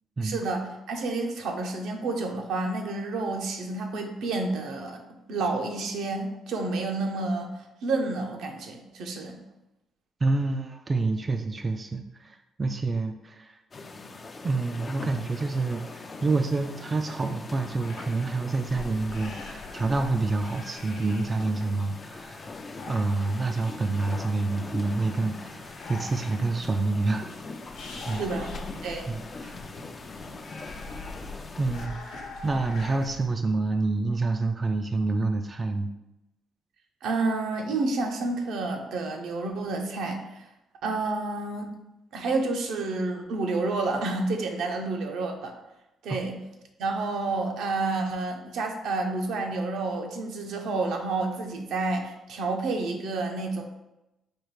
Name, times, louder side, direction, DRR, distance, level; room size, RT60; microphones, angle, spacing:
voice 1, 0.2-5.0 5.3-7.5 7.8-9.4 28.1-28.5 28.8-29.2 37.0-40.4 40.8-41.7 42.1-45.5 46.0-46.4 46.8-53.6, right 3 dB, 80° right, 2 dB, 0.7 m, -29 dB
voice 2, 10.2-13.6 14.4-22.5 22.9-27.3 28.1-28.2 29.1-29.5 31.6-32.0 32.4-35.9, right 3 dB, 30° right, 5 dB, 0.3 m, -27 dB
sound 1, 13.7-31.9, left 3 dB, 35° left, 0.4 m, -42 dB
sound 2, 17.7-33.3, left 3 dB, 85° left, 1.0 m, -44 dB
4.5 x 2.4 x 4.7 m, 0.92 s
cardioid pair, 90°, 0 cm